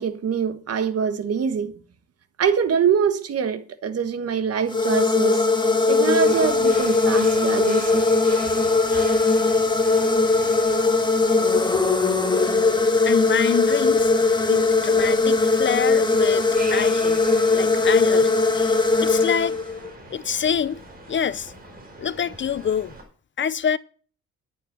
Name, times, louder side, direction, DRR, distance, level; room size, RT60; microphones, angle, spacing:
voice 1, 0.0-1.8 2.4-5.4 5.9-8.0, right 7 dB, 55° right, 1.4 m, -24 dB
sound 1, 4.7-19.9, left 3 dB, 15° left, 1.8 m, -20 dB
sound 2, 6.2-23.0, right 1 dB, 30° right, 4.8 m, -42 dB
voice 2, 13.0-14.1 14.4-17.2 17.5-19.6 20.1-20.8 21.1-21.5 22.0-22.9 23.4-23.8, left 8 dB, 40° left, 0.6 m, -26 dB
11.0 x 7.6 x 6.6 m
cardioid pair, 90°, 30 cm